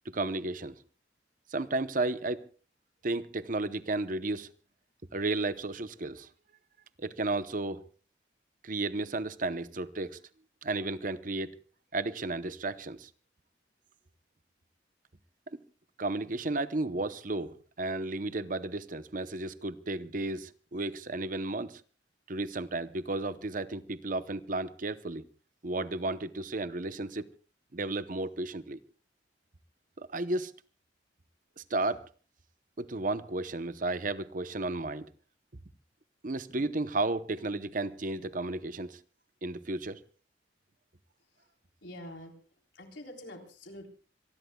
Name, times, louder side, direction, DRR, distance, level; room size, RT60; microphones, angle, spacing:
voice 1, 0.0-0.8 1.5-2.4 3.0-4.5 5.1-6.3 7.0-7.8 8.6-10.2 10.6-11.5 11.9-13.1 15.5-15.6 16.0-21.8 22.3-25.2 25.6-27.3 27.7-28.8 30.0-30.5 31.6-32.0 32.8-35.1 36.2-39.0 39.4-40.0, right 2 dB, 45° right, 0.8 m, -33 dB
voice 2, 41.8-42.3 42.7-43.9, left 1 dB, 75° left, 3.8 m, -45 dB
26.0 x 19.5 x 2.3 m
head